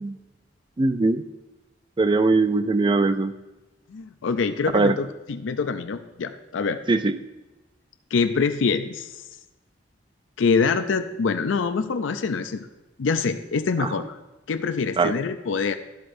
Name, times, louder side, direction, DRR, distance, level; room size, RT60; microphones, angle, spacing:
voice 1, 0.8-1.2 2.0-3.3 4.7-5.0 6.9-7.1 13.8-13.9 15.0-15.1, right 3 dB, 25° right, 11 dB, 0.4 m, -20 dB
voice 2, 3.9-6.8 8.1-9.2 10.4-12.7 13.0-14.2 14.5-15.8, left 5 dB, 90° left, 9 dB, 0.5 m, -25 dB
12.0 x 7.7 x 2.6 m, 1.1 s
head